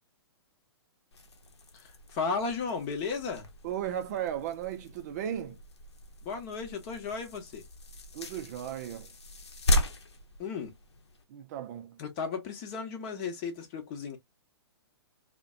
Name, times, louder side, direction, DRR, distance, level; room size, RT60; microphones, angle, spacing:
sound 1, 1.1-11.2, equal, 75° left, 0.7 m, -36 dB
voice 1, 1.7-3.5 6.2-7.6 10.4-10.7 12.0-14.2, left 5 dB, 35° left, 0.8 m, -35 dB
voice 2, 3.6-5.6 8.1-9.1 11.3-12.0 12.3-12.4, right 10 dB, 40° right, 0.4 m, -36 dB
2.5 x 2.1 x 2.3 m
hypercardioid pair, 125°, 14 cm